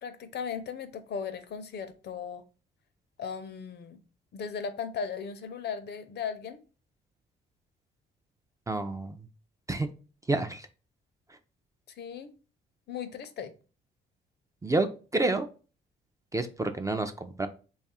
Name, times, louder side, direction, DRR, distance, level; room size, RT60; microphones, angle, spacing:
voice 1, 0.0-2.4 3.2-4.0 4.3-6.6 12.0-12.3 12.9-13.5, left 6 dB, 60° left, 0.6 m, -37 dB
voice 2, 8.7-9.2 9.7-9.9 10.3-10.7 14.6-14.9 15.1-15.5 16.3-17.5, right 2 dB, 15° right, 0.4 m, -28 dB
3.1 x 2.4 x 4.2 m
cardioid pair, 90°, 20 cm